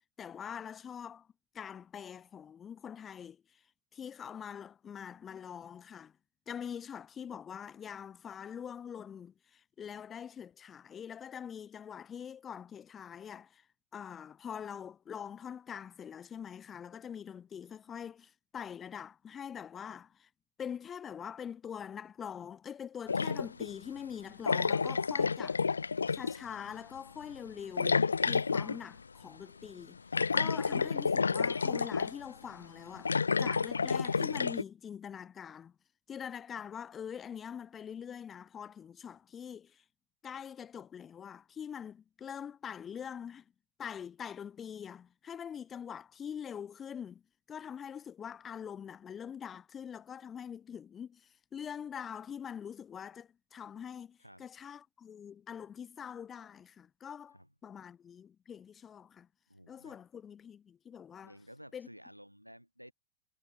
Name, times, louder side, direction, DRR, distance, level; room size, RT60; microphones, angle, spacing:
voice 1, 0.2-1.3 1.5-3.6 3.9-6.2 6.5-13.7 13.9-20.3 20.6-25.6 26.1-30.0 30.3-35.7 36.1-39.8 40.2-43.5 43.8-47.2 47.5-59.3 59.7-61.3 61.7-61.9, left 8 dB, 25° left, 3.2 m, -44 dB
sound 1, 23.1-23.7 24.5-26.4 27.8-28.8 30.1-32.2 33.0-34.6, left 5 dB, 75° left, 1.4 m, -30 dB
voice 2, 59.5-60.0 61.2-62.9, equal, 90° right, 6.2 m, -54 dB
figure-of-eight pair, 90°, 0 cm